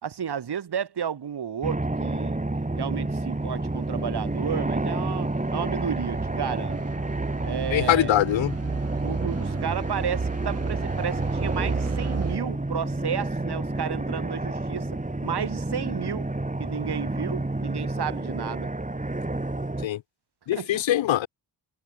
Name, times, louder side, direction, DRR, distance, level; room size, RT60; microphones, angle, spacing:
voice 1, 0.0-2.4 2.8-6.8 7.4-8.1 9.0-16.3 16.6-18.7 20.5-20.8, right 8 dB, 60° right, 1.3 m, -32 dB
sound 1, 1.6-19.9, right 2 dB, 15° right, 2.2 m, -30 dB
sound 2, 2.7-12.4, right 4 dB, 30° right, 1.3 m, -33 dB
voice 2, 7.7-8.5 19.8-20.0 20.5-21.3, left 13 dB, 80° left, 0.7 m, -22 dB
cardioid pair, 45°, 45 cm